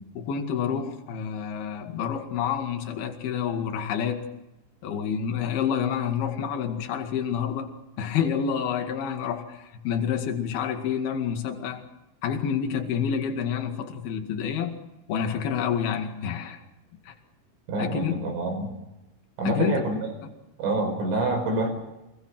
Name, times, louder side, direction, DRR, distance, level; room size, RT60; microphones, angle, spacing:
voice 1, 0.2-4.2 4.8-7.7 8.0-11.8 12.2-14.7 15.1-16.6 17.1-17.2 17.8-18.2 19.5-19.9, left 8 dB, 55° left, 5 dB, 3.7 m, -28 dB
voice 2, 17.7-18.7 19.4-20.0 20.6-21.7, right 2 dB, 75° right, 5 dB, 8.0 m, -26 dB
27.5 x 22.0 x 6.1 m, 0.95 s
omnidirectional pair, 5.6 m